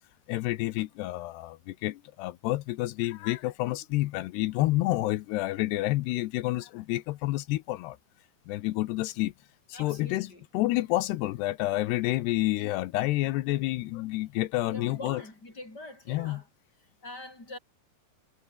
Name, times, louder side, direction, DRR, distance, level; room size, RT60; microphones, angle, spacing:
voice 1, 0.3-8.0 8.5-9.3 9.7-10.3 10.5-15.2 16.1-16.4, left 17 dB, 80° left, 2.6 m, -29 dB
voice 2, 9.7-10.4 14.7-16.5 17.0-17.6, left 2 dB, 20° left, 8.4 m, -44 dB
omnidirectional pair, 5.3 m